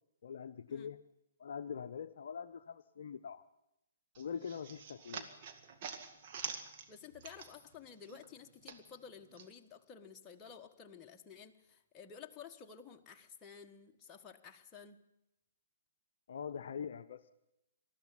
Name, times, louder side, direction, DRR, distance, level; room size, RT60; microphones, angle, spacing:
voice 1, 0.2-1.0 1.4-3.4 4.2-5.3 16.3-17.3, left 7 dB, 55° left, 9 dB, 0.7 m, -43 dB
sound 1, 4.1-7.8 8.1-9.5, right 6 dB, 40° right, 2.0 m, -46 dB
voice 2, 6.9-15.0, left 7 dB, 20° left, 3 dB, 1.4 m, -53 dB
20.0 x 13.5 x 9.9 m, 0.90 s
figure-of-eight pair, 125°, 0 cm